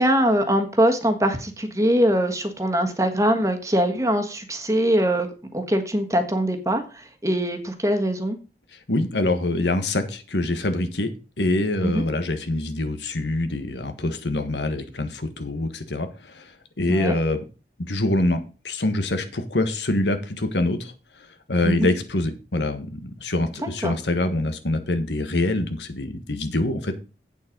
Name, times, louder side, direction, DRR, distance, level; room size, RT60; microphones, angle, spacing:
voice 1, 0.0-5.3 5.5-8.4 11.8-12.0 16.9-17.2 21.6-21.9 23.6-23.9, equal, 15° right, 5 dB, 1.4 m, -22 dB
voice 2, 8.7-17.4 17.8-20.9 21.5-27.0, left 2 dB, 85° left, 8 dB, 1.5 m, -25 dB
8.6 x 7.3 x 5.2 m, 0.33 s
head